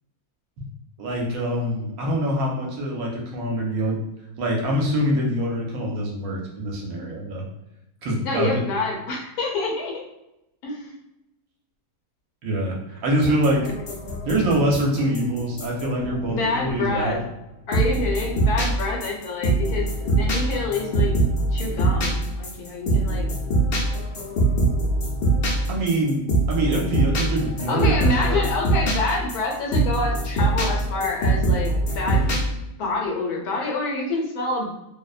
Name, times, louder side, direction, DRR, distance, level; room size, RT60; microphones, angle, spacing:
voice 1, 1.0-4.0 4.4-7.4 8.0-8.6 12.4-13.7 14.2-17.2 25.7-26.2 26.5-28.4 32.1-32.2, right 1 dB, 70° right, -1 dB, 1.0 m, -24 dB
voice 2, 8.2-10.0 10.6-11.0 13.6-13.7 16.3-17.2 17.7-21.1 21.5-23.3 27.7-32.2 32.8-34.7, left 3 dB, 80° left, -1 dB, 1.1 m, -27 dB
sound 1, 13.2-17.1 17.7-32.4, right 2 dB, 65° left, 0.6 m, -23 dB
2.6 x 2.1 x 2.3 m, 0.89 s
omnidirectional pair, 1.7 m